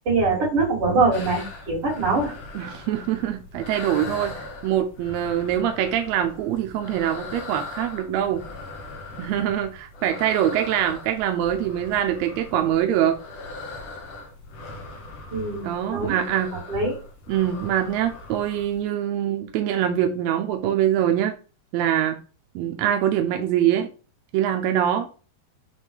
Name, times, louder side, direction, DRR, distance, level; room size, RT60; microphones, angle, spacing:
voice 1, 0.0-2.3 15.3-16.2 16.7-17.0, right 3 dB, 45° right, 3.3 m, -23 dB
sound 1, 1.1-18.8, left 3 dB, 65° left, 2.0 m, -40 dB
voice 2, 2.6-8.4 9.2-13.2 15.6-16.5 17.3-21.3 21.7-22.2 22.6-23.9 24.3-25.1, right 10 dB, 75° right, 1.7 m, -24 dB
6.4 x 3.1 x 5.3 m
omnidirectional pair, 3.7 m